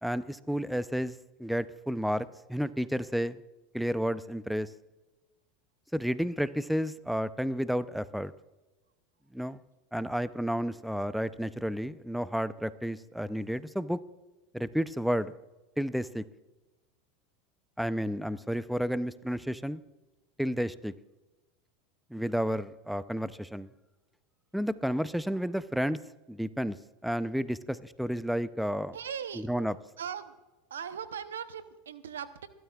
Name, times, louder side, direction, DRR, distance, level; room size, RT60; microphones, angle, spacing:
voice 1, 0.0-1.1 1.4-3.4 3.7-4.7 5.9-8.3 9.3-9.6 9.9-14.0 14.5-15.3 15.8-16.2 17.8-19.8 20.4-20.9 22.1-23.7 24.5-26.0 26.3-26.8 27.0-29.0 29.4-29.7, equal, ahead, 15 dB, 0.5 m, -31 dB
voice 2, 28.9-29.5 30.0-30.3 30.7-32.5, right 8 dB, 85° right, 12 dB, 0.8 m, -39 dB
28.5 x 12.5 x 2.4 m, 1.1 s
hypercardioid pair, 95°, 0 cm